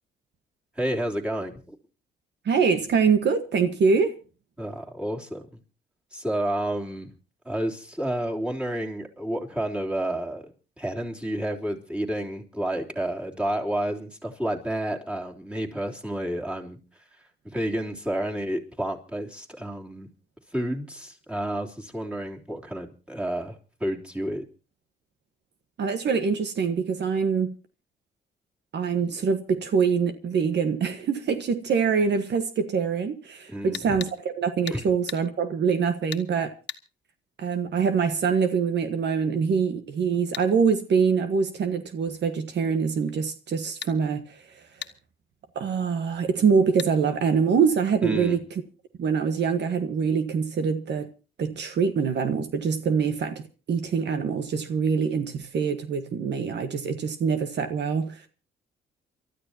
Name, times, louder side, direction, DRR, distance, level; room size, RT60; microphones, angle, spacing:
voice 1, 0.8-1.8 4.6-5.6 6.1-7.1 7.4-10.5 10.8-16.8 17.4-20.1 20.5-24.4 33.5-34.0 34.7-34.8 48.0-48.4, right 1 dB, 5° right, 3.3 m, -30 dB
voice 2, 2.4-4.2 25.8-27.6 28.7-36.5 37.4-44.6 45.5-48.6 49.0-51.1 51.4-58.3, right 6 dB, 60° right, 1.5 m, -24 dB
sound 1, 33.7-34.1 34.7-34.8 35.1-35.2 36.1-36.3 36.7-36.8 40.3-40.5 43.8-44.0 44.8-45.0 46.8-46.9, left 9 dB, 65° left, 1.5 m, -36 dB
29.5 x 13.0 x 2.9 m
cardioid pair, 90°, 20 cm